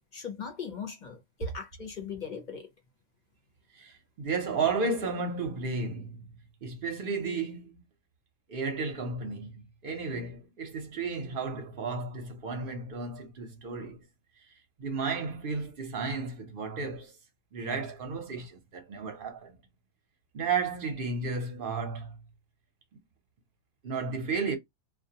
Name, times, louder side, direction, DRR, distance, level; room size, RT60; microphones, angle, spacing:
voice 1, 0.1-2.7, left 6 dB, 50° left, 0.6 m, -39 dB
voice 2, 3.7-6.2 6.6-7.8 8.5-14.1 14.8-17.1 17.5-19.5 20.3-22.2 22.9-23.0 23.8-24.6, right 4 dB, 55° right, 0.7 m, -33 dB
2.2 x 2.2 x 2.7 m
omnidirectional pair, 1.4 m